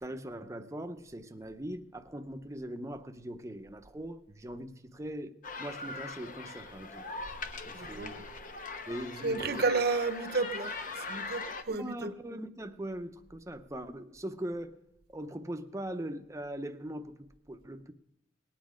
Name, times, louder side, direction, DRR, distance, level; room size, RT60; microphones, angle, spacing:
voice 1, 0.0-7.1 7.6-8.2 8.9-9.7 11.7-14.8 15.1-17.9, right 1 dB, 15° right, 0.7 m, -41 dB
sound 1, 5.4-11.6, left 3 dB, 45° left, 0.9 m, -41 dB
voice 2, 7.7-8.4 9.2-12.1, right 4 dB, 60° right, 0.9 m, -32 dB
19.0 x 9.4 x 5.0 m
head